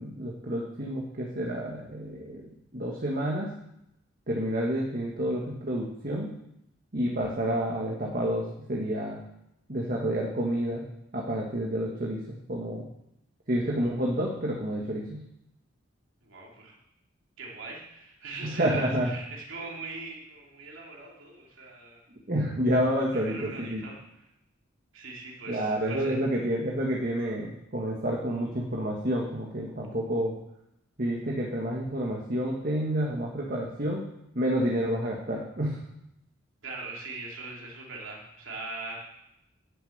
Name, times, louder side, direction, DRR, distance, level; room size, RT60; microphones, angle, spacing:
voice 1, 0.0-3.5 4.3-6.3 6.9-9.2 9.7-10.8 11.1-12.2 12.5-12.8 13.5-15.2 18.4-19.1 22.1-23.9 25.5-30.3 31.0-34.1 34.3-35.8, equal, 45° right, -2 dB, 1.5 m, -29 dB
voice 2, 16.2-16.8 17.4-22.0 23.1-24.0 24.9-26.2 36.6-39.0, right 3 dB, 80° right, -2 dB, 2.9 m, -41 dB
11.0 x 7.0 x 7.9 m, 0.84 s
head